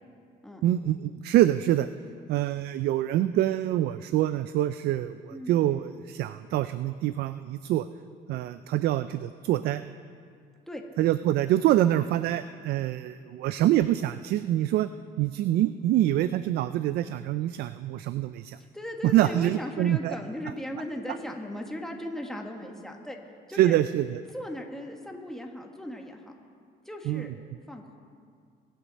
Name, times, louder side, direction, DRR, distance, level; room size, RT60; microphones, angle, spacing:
voice 1, 0.6-1.9 2.3-7.9 8.3-9.8 11.0-14.9 15.2-18.6 19.0-20.2 23.5-24.2 27.1-27.3, right 13 dB, 70° right, 13 dB, 0.4 m, -25 dB
voice 2, 18.6-23.2 23.5-23.8 24.3-26.2 26.8-27.3 27.7-28.0, left 1 dB, 5° left, 1 dB, 1.6 m, -37 dB
22.5 x 9.3 x 4.1 m, 2.2 s
cardioid pair, 110°, 17 cm